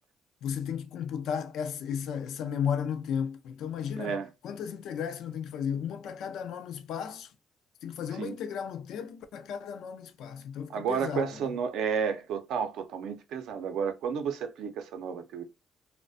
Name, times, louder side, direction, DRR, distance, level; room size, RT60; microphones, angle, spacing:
voice 1, 0.4-4.1 4.4-7.3 7.8-11.5, left 8 dB, 80° left, 0.4 m, -34 dB
voice 2, 4.0-4.3 8.2-8.4 10.7-15.4, right 6 dB, 85° right, 0.5 m, -32 dB
2.3 x 2.1 x 2.5 m
cardioid pair, 90°, 0 cm